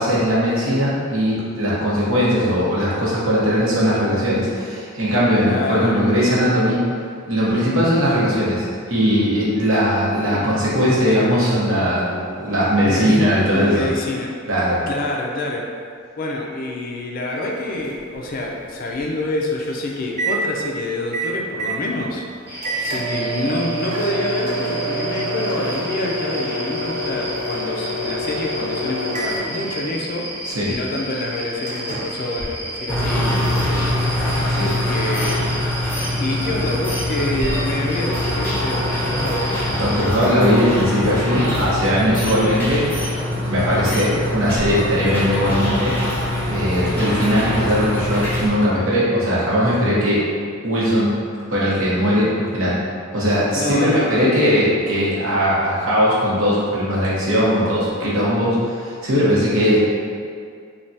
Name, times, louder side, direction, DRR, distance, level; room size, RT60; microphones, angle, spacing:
voice 1, 0.0-6.8 7.3-13.9 14.5-14.8 30.4-30.7 34.5-34.7 39.8-42.8 43.5-46.0 46.5-50.2 50.6-51.2 51.5-52.8 53.1-59.9, equal, 75° right, -7 dB, 0.9 m, -19 dB
voice 2, 5.5-6.1 10.3-10.7 12.9-14.3 14.9-15.7 16.2-30.3 30.7-33.7 34.5-35.5 36.2-39.5 42.1-42.9 43.6-44.1 53.5-54.8, left 2 dB, 45° left, 0 dB, 0.3 m, -27 dB
Microwave oven, 17.5-33.2, right 1 dB, 35° right, 0.5 m, -28 dB
sound 1, 22.5-40.0, right 1 dB, 10° right, 1.0 m, -33 dB
sound 2, 32.9-48.5, left 1 dB, 10° left, 0.6 m, -23 dB
3.2 x 2.2 x 2.6 m, 2.2 s
head